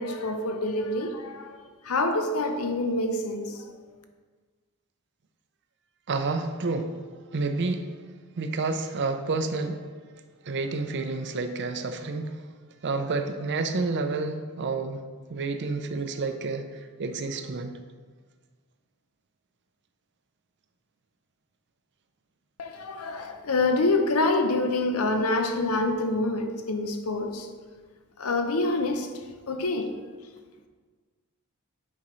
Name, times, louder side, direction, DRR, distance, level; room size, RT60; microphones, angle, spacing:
voice 1, 0.0-1.6 1.8-3.8 22.6-27.5 28.2-29.1 29.5-29.9, left 2 dB, 70° left, 0.7 m, -26 dB
voice 2, 6.1-7.0 7.3-8.0 8.4-9.9 10.4-12.4 12.8-15.0 15.3-17.7, right 3 dB, 55° right, 0.6 m, -29 dB
8.5 x 5.2 x 3.1 m
head